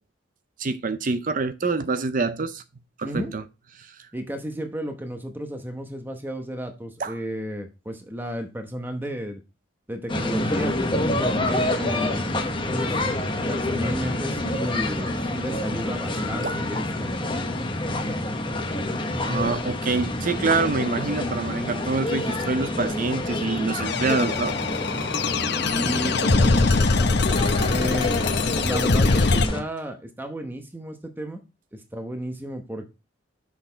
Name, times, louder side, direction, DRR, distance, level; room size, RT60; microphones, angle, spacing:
voice 1, 0.6-2.6 3.0-3.4 3.8-4.1 7.0-7.2 16.4-16.6 19.2-24.6, right 3 dB, 45° right, 0.6 m, -26 dB
voice 2, 3.0-3.3 4.1-9.4 9.9-10.8 11.4-12.3 12.8-13.0 13.5-17.1 25.6-26.9 27.6-28.1 28.6-31.4 31.7-32.9, equal, 10° right, 0.9 m, -33 dB
sound 1, 10.1-29.6, left 1 dB, 25° left, 1.0 m, -27 dB
sound 2, 23.9-29.5, left 3 dB, 60° left, 0.7 m, -22 dB
6.5 x 5.9 x 4.5 m
head